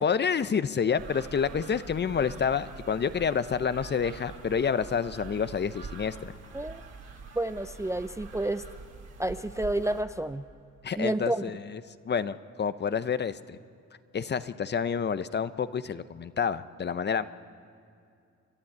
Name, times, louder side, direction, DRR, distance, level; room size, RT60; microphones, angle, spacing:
voice 1, 0.0-6.3 10.8-13.6 14.1-17.2, left 6 dB, 35° left, 14 dB, 0.7 m, -29 dB
sound 1, 0.9-10.0, right 5 dB, 55° right, 2.8 m, -45 dB
voice 2, 7.4-8.6 9.2-10.4 11.0-11.4, right 1 dB, 10° right, 11 dB, 0.5 m, -30 dB
29.5 x 12.0 x 8.7 m, 2.4 s
cardioid pair, 90°, 30 cm